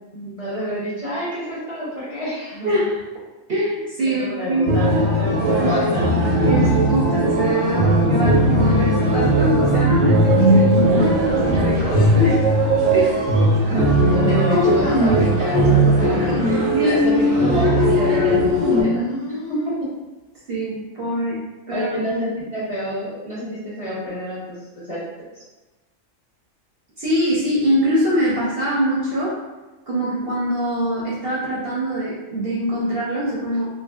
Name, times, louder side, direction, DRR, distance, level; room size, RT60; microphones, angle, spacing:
voice 1, 0.1-2.7 4.1-6.7 7.8-7.9 13.6-13.9 14.3-19.0 19.5-19.8 21.7-25.1, equal, 35° left, -10 dB, 0.7 m, -28 dB
voice 2, 2.6-3.0 3.5-4.8 5.6-5.7 6.5-12.4 12.9-13.2 16.7-17.2 20.5-21.4 21.7-21.9 27.0-29.3 29.9-33.7, equal, 60° right, -6 dB, 0.7 m, -23 dB
sound 1, 4.7-18.8, right 1 dB, 80° right, 1.0 m, -18 dB
sound 2, 10.2-13.2, left 1 dB, 85° left, 1.0 m, -34 dB
sound 3, 14.8-15.4 16.2-16.9 17.3-17.7 18.5-19.7, equal, 60° left, 0.4 m, -25 dB
2.8 x 2.6 x 2.3 m, 1.1 s
omnidirectional pair, 1.4 m